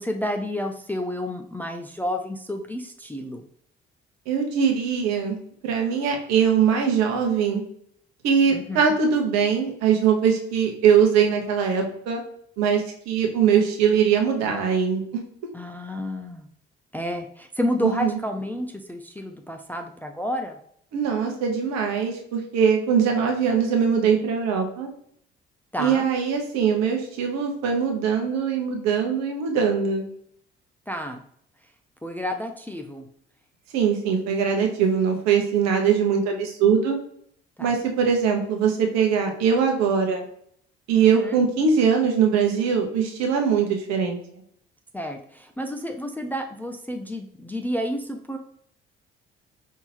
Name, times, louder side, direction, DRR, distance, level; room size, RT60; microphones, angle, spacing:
voice 1, 0.0-3.4 8.5-8.8 15.5-16.5 16.9-20.6 25.7-26.1 30.9-31.2 32.0-33.0 37.6-37.7 40.9-41.4 44.9-48.4, left 1 dB, 5° left, 4 dB, 0.4 m, -30 dB
voice 2, 4.3-5.4 5.6-7.6 8.2-12.2 12.6-15.2 17.8-18.2 20.9-24.9 25.8-30.1 33.7-37.0 37.6-40.2 40.9-44.2, right 7 dB, 60° right, 3 dB, 1.0 m, -22 dB
5.3 x 2.8 x 2.9 m, 0.66 s
figure-of-eight pair, 45°, 30 cm